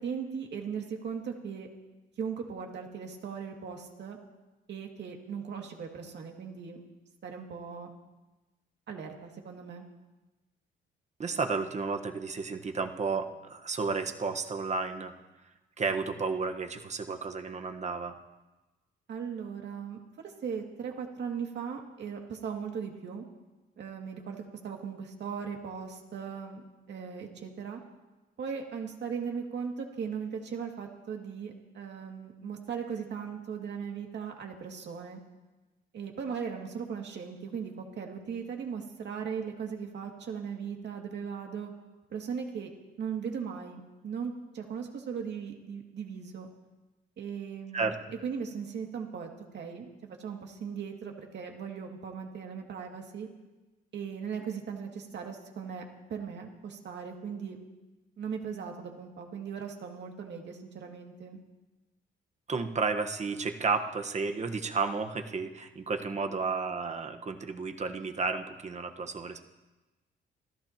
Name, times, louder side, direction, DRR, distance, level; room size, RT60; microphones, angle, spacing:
voice 1, 0.0-1.7 2.2-4.2 4.7-6.8 7.2-7.9 8.9-9.8 19.1-23.2 23.8-27.8 28.4-35.2 35.9-41.7 42.1-42.7 43.0-46.5 47.2-47.9 48.2-49.3 49.5-53.3 53.9-55.8 56.1-57.6 58.2-61.4, right 6 dB, 60° right, 2 dB, 2.4 m, -38 dB
voice 2, 11.2-15.1 15.8-18.2 47.7-48.0 62.5-69.4, right 4 dB, 35° right, 6 dB, 1.3 m, -32 dB
28.0 x 13.5 x 3.0 m, 1.1 s
cardioid pair, 90°, 20 cm